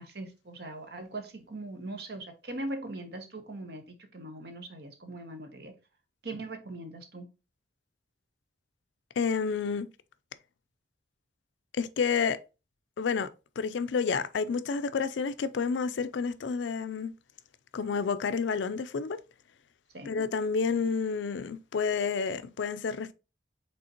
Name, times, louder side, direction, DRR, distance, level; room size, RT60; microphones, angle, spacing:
voice 1, 0.0-5.7 6.2-7.3 19.9-20.2, right 2 dB, 55° right, 0.9 m, -40 dB
voice 2, 9.2-9.9 11.8-12.4 13.0-13.3 13.6-17.1 17.7-19.2 20.1-23.1, left 5 dB, 75° left, 0.4 m, -29 dB
5.2 x 3.5 x 2.8 m
head